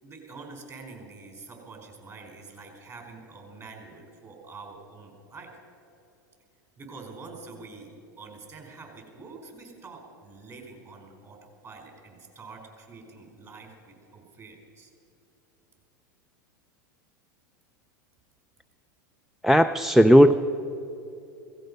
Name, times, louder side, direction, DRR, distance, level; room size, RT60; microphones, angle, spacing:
voice 1, 0.0-5.5 6.8-14.9, right 4 dB, 30° right, 2 dB, 4.3 m, -46 dB
voice 2, 19.4-20.3, equal, 5° right, 6 dB, 0.4 m, -16 dB
16.5 x 16.0 x 5.3 m, 2.9 s
hypercardioid pair, 100°, 11 cm